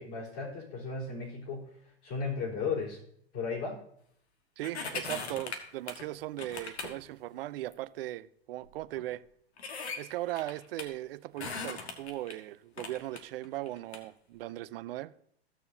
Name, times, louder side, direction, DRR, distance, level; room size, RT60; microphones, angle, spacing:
voice 1, 0.0-3.0 3.3-3.8, left 4 dB, 55° left, 3.8 m, -35 dB
sound 1, 4.6-6.1 6.4-7.0 7.7-7.8 8.6-8.7 9.0-9.1 9.6-10.9 11.4-12.3 12.8-14.0 14.5-14.6, left 4 dB, 80° left, 1.6 m, -39 dB
voice 2, 4.6-9.2 10.0-15.1, right 15 dB, 60° right, 0.5 m, -38 dB
15.5 x 6.8 x 2.7 m
hypercardioid pair, 105°, 32 cm